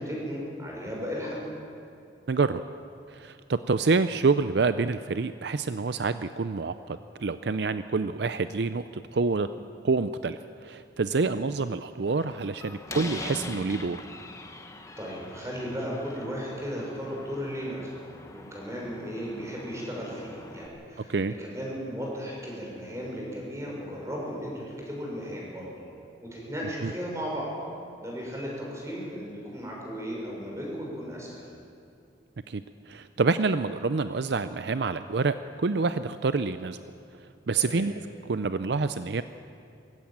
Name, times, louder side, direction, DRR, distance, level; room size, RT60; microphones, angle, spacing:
voice 1, 0.0-1.4 11.1-11.4 15.0-25.7 26.2-27.5 28.0-31.4 37.6-37.8, equal, 15° right, -3 dB, 6.1 m, -35 dB
voice 2, 2.3-2.6 3.1-8.8 9.1-9.5 9.8-14.0 21.1-21.3 26.8-26.9 32.5-36.8 37.5-37.9 38.3-39.2, right 4 dB, 65° right, 11 dB, 0.5 m, -27 dB
Slam, 12.1-20.7, left 2 dB, 15° left, 1.2 m, -43 dB
20.5 x 15.5 x 8.9 m, 2.6 s
head